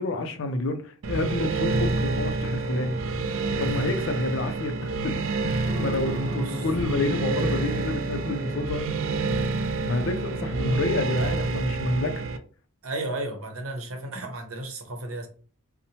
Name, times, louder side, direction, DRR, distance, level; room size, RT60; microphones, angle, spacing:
voice 1, 0.0-3.0 3.6-5.2 5.4-8.8 9.8-12.2, left 2 dB, 60° left, 0.4 m, -29 dB
sound 1, 1.0-12.4, right 3 dB, 65° right, 0.4 m, -28 dB
sound 2, 5.6-10.7, equal, 15° left, 0.9 m, -37 dB
voice 2, 12.8-15.3, right 2 dB, 80° right, 0.7 m, -34 dB
2.8 x 2.1 x 2.7 m
head